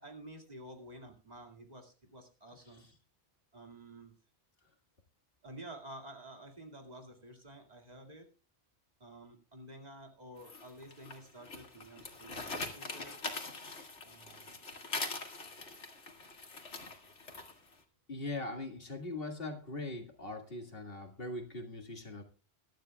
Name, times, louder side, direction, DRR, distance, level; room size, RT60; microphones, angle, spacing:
voice 1, 0.0-2.9 3.5-4.1 5.4-8.3 9.0-13.2 14.0-14.5, right 1 dB, 35° right, 2 dB, 2.3 m, -51 dB
sound 1, 10.4-17.7, left 3 dB, 85° left, 2.2 m, -43 dB
voice 2, 18.1-22.2, left 2 dB, 55° left, 4 dB, 2.1 m, -41 dB
22.5 x 12.0 x 2.3 m, 0.35 s
omnidirectional pair, 1.2 m